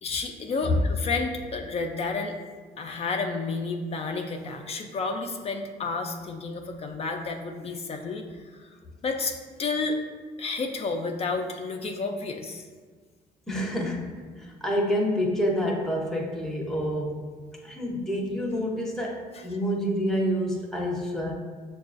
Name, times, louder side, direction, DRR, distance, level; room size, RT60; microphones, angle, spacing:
voice 1, 0.0-2.3 2.8-8.7 9.0-10.0 10.4-12.7 19.3-19.4, left 3 dB, 35° left, 3 dB, 0.4 m, -31 dB
voice 2, 13.5-17.3 17.6-21.3, equal, 5° left, -2 dB, 0.6 m, -28 dB
6.5 x 2.3 x 2.4 m, 1.5 s
cardioid pair, 110°, 17 cm